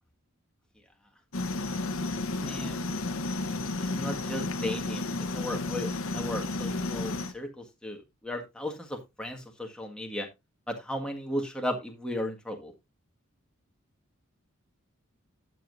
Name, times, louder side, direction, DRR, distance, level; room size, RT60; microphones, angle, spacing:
sound 1, 1.3-7.3, left 2 dB, 70° left, 1.0 m, -32 dB
voice 1, 2.4-2.9 3.8-5.1 5.3-10.3 10.7-12.7, left 1 dB, 5° left, 2 dB, 1.7 m, -35 dB
11.5 x 7.5 x 2.6 m, 0.22 s
head